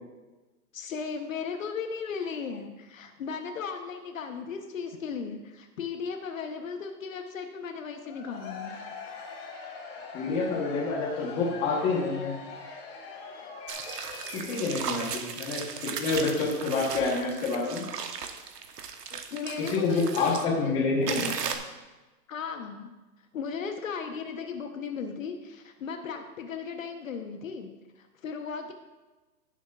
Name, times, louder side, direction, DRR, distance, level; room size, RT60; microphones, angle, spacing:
voice 1, 0.7-8.8 19.1-21.2 22.3-22.9 23.3-27.7 28.0-28.7, left 5 dB, 50° left, 5 dB, 1.0 m, -36 dB
Cheering / Crowd, 8.0-14.8, left 5 dB, 35° left, 1.9 m, -42 dB
voice 2, 10.1-12.3 14.3-17.9 19.6-21.3, left 3 dB, 15° left, -3 dB, 1.1 m, -28 dB
sound 1, 13.7-20.5 21.1-21.6, right 6 dB, 70° right, 1.2 m, -36 dB
16.5 x 7.2 x 2.4 m, 1.2 s
hypercardioid pair, 160°, 50 cm